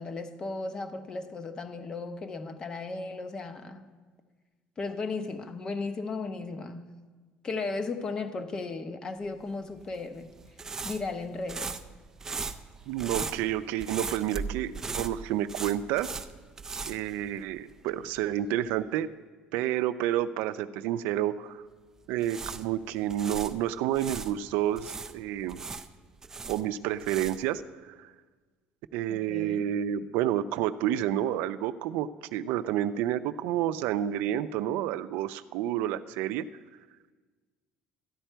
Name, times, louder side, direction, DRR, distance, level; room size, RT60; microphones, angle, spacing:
voice 1, 0.0-3.9 4.8-6.9 7.4-10.3 10.8-11.8 29.1-29.7, left 3 dB, 25° left, 9 dB, 0.7 m, -35 dB
sound 1, 9.7-17.8 18.1-18.2 22.0-24.3 24.8-27.6, right 4 dB, 15° right, 0.4 m, -38 dB
voice 2, 12.9-16.1 16.9-19.1 19.5-21.6 22.1-25.6 26.5-27.6 28.0-28.1 28.9-36.5, right 12 dB, 90° right, 12 dB, 0.4 m, -29 dB
13.5 x 10.0 x 4.5 m, 1.4 s
cardioid pair, 165°, 3 cm